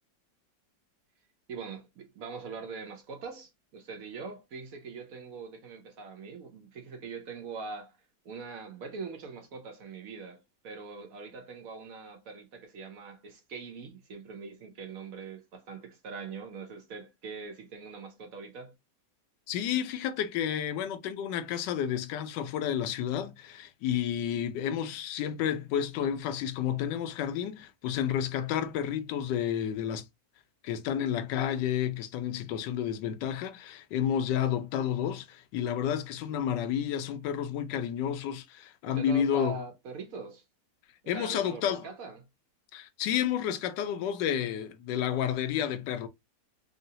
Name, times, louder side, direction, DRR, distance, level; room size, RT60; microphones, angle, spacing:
voice 1, 1.5-8.0 8.2-18.8 38.9-40.4 41.0-42.2, right 5 dB, 60° right, 1.0 m, -42 dB
voice 2, 19.5-30.1 30.6-39.6 41.1-41.8 42.7-46.1, left 9 dB, 80° left, 1.2 m, -31 dB
3.8 x 2.1 x 2.7 m
omnidirectional pair, 1.9 m